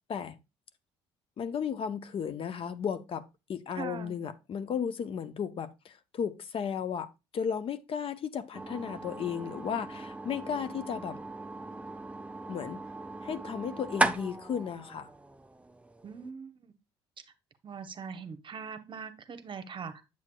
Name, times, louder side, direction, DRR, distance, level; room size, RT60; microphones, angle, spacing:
voice 1, 1.4-3.2 3.5-11.2 12.5-12.8 13.2-15.1, left 7 dB, 45° left, 0.6 m, -34 dB
voice 2, 3.7-4.2 16.0-16.7 17.6-20.0, right 6 dB, 40° right, 0.9 m, -41 dB
sound 1, 8.5-16.3, right 2 dB, 10° right, 0.5 m, -37 dB
7.5 x 7.2 x 2.3 m
hypercardioid pair, 60°, 13 cm